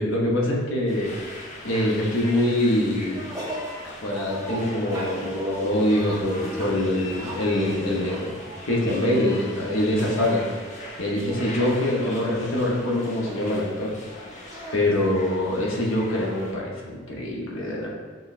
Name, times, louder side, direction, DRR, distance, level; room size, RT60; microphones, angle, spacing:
voice 1, 0.0-3.2 3.8-8.3 8.7-10.4 11.0-13.9 14.4-17.9, left 1 dB, 75° left, -2 dB, 0.8 m, -24 dB
sound 1, 0.9-16.5, left 1 dB, 35° left, 0.5 m, -40 dB
sound 2, 3.0-3.7 4.1-9.4 9.7-10.6 11.2-11.8 12.2-12.3 12.5-13.5 14.5-14.8, right 1 dB, 15° right, 0.6 m, -38 dB
5.9 x 2.2 x 2.4 m, 1.4 s
head